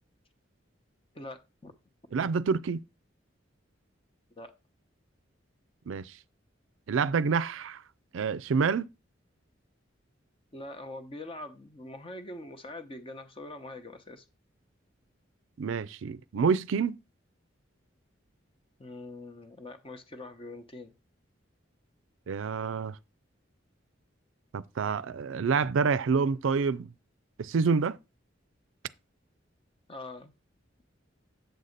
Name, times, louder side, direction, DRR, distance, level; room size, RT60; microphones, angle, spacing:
voice 1, 1.1-1.7 4.3-4.5 10.5-14.2 18.8-20.9 29.9-30.3, left 2 dB, 30° left, 0.9 m, -43 dB
voice 2, 2.1-2.8 5.9-6.1 6.9-7.8 8.1-8.9 15.6-17.0 22.3-23.0 24.5-26.9 27.4-28.0, right 5 dB, 90° right, 0.4 m, -27 dB
8.0 x 4.0 x 6.6 m
head